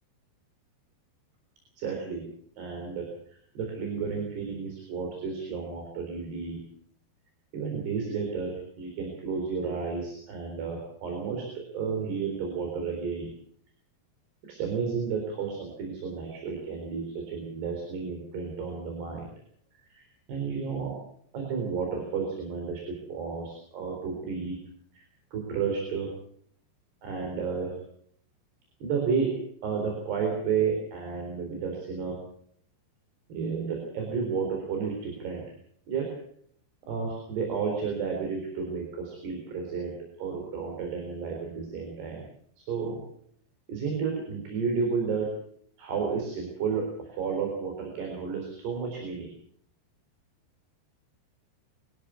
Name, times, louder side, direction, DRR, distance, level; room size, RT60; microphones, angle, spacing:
voice 1, 1.8-2.3 2.6-6.6 7.5-13.3 14.5-19.3 19.9-20.9 21.3-24.6 24.9-25.1 25.3-26.1 27.0-27.8 28.8-32.1 33.3-35.4 35.9-36.1 36.9-42.3 42.6-43.0 43.7-45.3 45.8-49.3, right 5 dB, 70° right, 1 dB, 6.1 m, -32 dB
24.5 x 12.5 x 8.4 m, 0.65 s
omnidirectional pair, 4.9 m